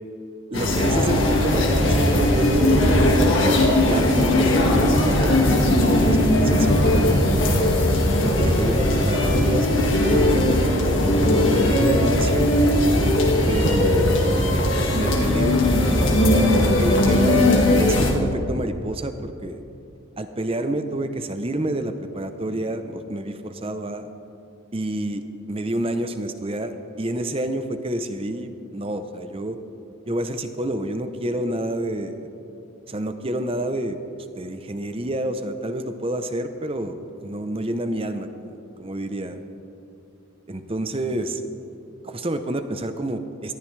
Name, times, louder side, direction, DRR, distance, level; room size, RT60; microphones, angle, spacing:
sound 1, 0.5-18.1, left 1 dB, 60° left, 1.9 m, -19 dB
voice 1, 0.5-3.0 3.6-7.7 8.2-12.6 13.5-19.6 20.2-24.1 24.7-25.2 25.5-29.6 30.1-32.3 32.9-34.0 34.4-39.4 40.5-41.4 42.0-43.5, right 1 dB, 25° right, 8 dB, 0.7 m, -29 dB
19.5 x 14.0 x 3.3 m, 2.7 s
head